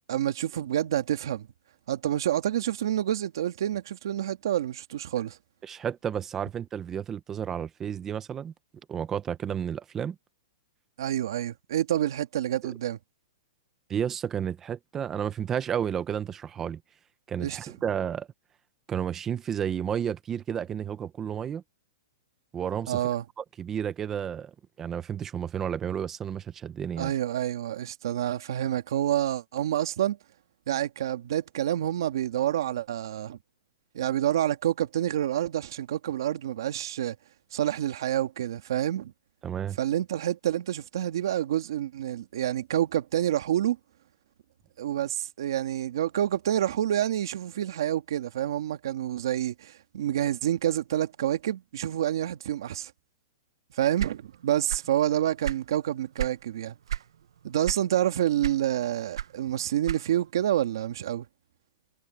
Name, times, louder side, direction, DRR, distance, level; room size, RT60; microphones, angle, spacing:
voice 1, 0.1-1.5 1.9-5.4 11.0-13.0 17.4-17.7 22.9-23.2 27.0-30.2 30.7-33.4 33.9-37.2 37.5-39.1 39.8-43.8 44.8-52.9 53.7-56.7 57.4-61.2, right 11 dB, 60° right, 1.7 m, -28 dB
voice 2, 5.6-8.5 8.9-10.1 12.6-12.7 13.9-16.8 17.3-18.3 18.9-21.6 22.5-23.0 23.4-24.5 24.8-27.1 39.4-39.8, right 8 dB, 15° right, 0.8 m, -31 dB
sound 1, 54.0-55.0 55.3-56.4 56.9-57.1 57.6-58.1 58.4-60.3, right 10 dB, 75° right, 0.9 m, -32 dB
hypercardioid pair, 170°, 3 cm